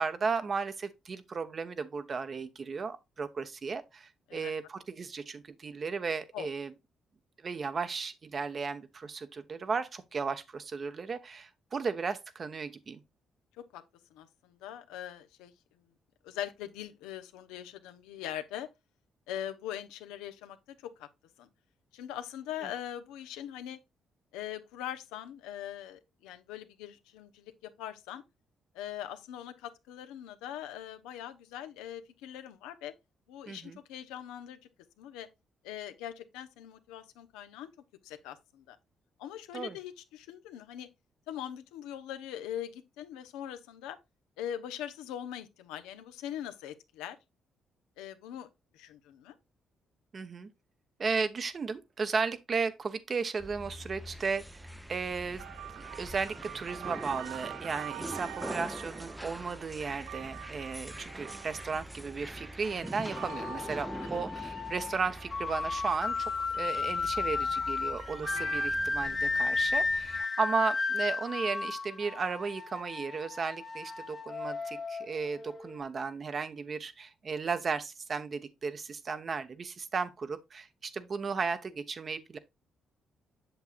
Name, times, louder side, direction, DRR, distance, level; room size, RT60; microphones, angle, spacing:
voice 1, 0.0-6.7 7.4-13.0 22.6-22.7 33.5-33.8 39.5-39.8 50.1-50.5 51.0-54.6 54.9-55.4 55.7-82.4, right 5 dB, 45° right, 1.0 m, -35 dB
voice 2, 14.1-15.5 16.2-18.7 19.3-21.1 21.4-21.5 21.9-23.8 24.3-28.2 28.7-32.9 33.3-34.6 35.0-35.3 35.6-37.7 38.0-38.8 39.2-40.9 41.3-44.0 44.4-47.2 48.0-48.5 48.7-49.3 64.1-64.2, left 11 dB, 90° left, 0.8 m, -41 dB
sound 1, 53.4-70.2, equal, 5° right, 0.6 m, -44 dB
sound 2, 55.4-65.6 65.9-68.7, right 14 dB, 80° right, 0.4 m, -46 dB
sound 3, 63.0-75.8, left 4 dB, 35° left, 1.0 m, -34 dB
7.9 x 6.9 x 2.4 m
supercardioid pair, 60°, 0 cm